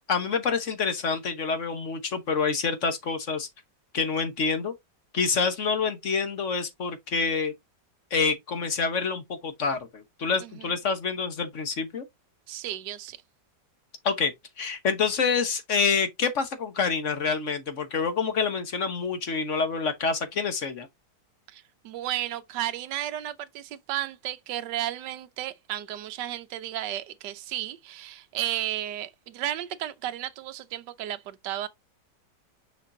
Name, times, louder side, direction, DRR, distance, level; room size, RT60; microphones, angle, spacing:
voice 1, 0.1-3.5 3.9-4.7 5.1-7.5 8.1-12.0 14.0-14.3 14.6-20.9, left 5 dB, 45° left, 1.3 m, -27 dB
voice 2, 10.4-10.7 12.5-13.2 21.5-31.7, right 13 dB, 70° right, 1.4 m, -33 dB
6.3 x 5.8 x 2.7 m
omnidirectional pair, 2.0 m